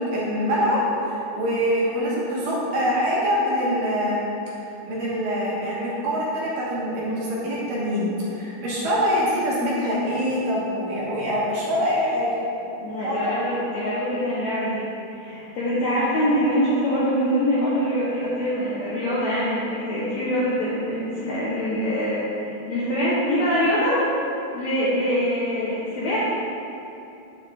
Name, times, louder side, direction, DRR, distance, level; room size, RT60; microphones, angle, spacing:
voice 1, 0.0-4.2 4.8-12.4 13.0-13.3, equal, 70° right, -7 dB, 2.6 m, -24 dB
voice 2, 12.8-14.8 15.1-24.1 24.5-26.2, equal, 70° left, -9 dB, 1.8 m, -24 dB
9.2 x 4.7 x 3.5 m, 2.8 s
omnidirectional pair, 4.4 m